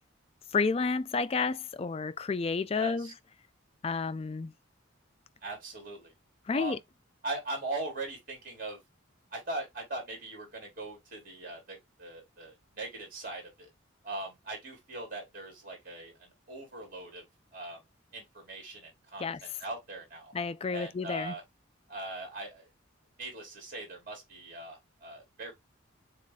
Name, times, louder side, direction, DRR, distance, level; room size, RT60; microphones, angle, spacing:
voice 1, 0.5-3.1 3.8-4.5 6.5-6.8 19.2-19.4 20.3-21.3, left 4 dB, 30° left, 0.3 m, -30 dB
voice 2, 2.7-3.1 5.4-6.1 6.5-6.8 7.2-8.8 9.3-13.7 14.0-17.2 17.5-17.8 18.1-20.3 20.7-21.4 21.9-22.7 23.2-25.5, right 2 dB, 45° right, 2.4 m, -40 dB
7.3 x 2.5 x 2.3 m
head